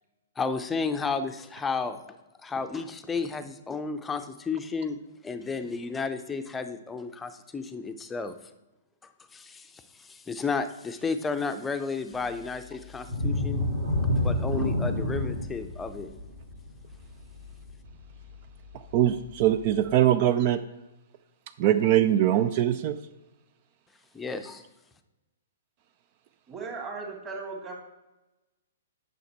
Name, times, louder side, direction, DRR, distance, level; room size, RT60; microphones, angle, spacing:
voice 1, 0.4-2.0 2.4-8.3 9.3-13.7 14.2-16.1 24.1-24.6, left 4 dB, 10° left, 8 dB, 0.6 m, -32 dB
sound 1, 13.0-18.5 18.9-19.1 19.6-19.7, left 1 dB, 75° right, 2.8 m, -28 dB
voice 2, 18.7-20.6 21.6-23.0, right 12 dB, 40° right, 11 dB, 0.4 m, -22 dB
voice 3, 26.5-27.8, right 4 dB, 25° right, 1 dB, 2.1 m, -37 dB
9.2 x 6.5 x 4.3 m, 1.0 s
figure-of-eight pair, 115°, 0 cm